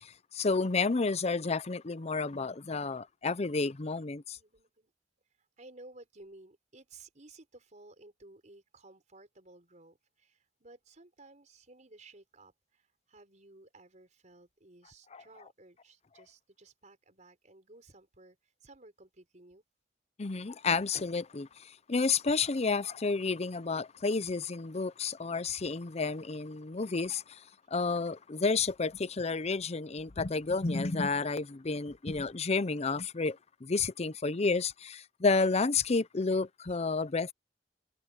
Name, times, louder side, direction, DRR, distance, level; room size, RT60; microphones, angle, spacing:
voice 1, 0.0-4.4 15.1-15.2 20.2-27.4 27.7-37.3, left 4 dB, 35° left, 0.6 m, -31 dB
voice 2, 4.3-4.9 5.4-19.6, right 2 dB, 45° right, 4.7 m, -56 dB
head